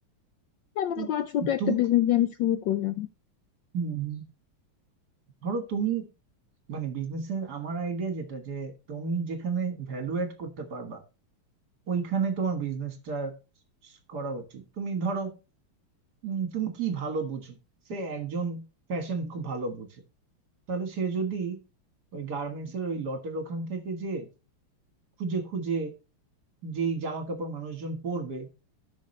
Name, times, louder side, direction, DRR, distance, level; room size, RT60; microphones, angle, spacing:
voice 1, 0.8-3.1, left 12 dB, 75° left, 11 dB, 1.1 m, -25 dB
voice 2, 1.4-1.8 3.7-4.2 5.4-6.1 6.7-11.0 11.9-13.3 13.8-15.4 16.2-17.6 17.9-19.9 20.7-21.6 22.1-24.3 25.2-25.9 26.6-28.5, right 5 dB, 50° right, 6 dB, 2.0 m, -31 dB
14.0 x 5.9 x 3.2 m, 0.31 s
omnidirectional pair, 2.4 m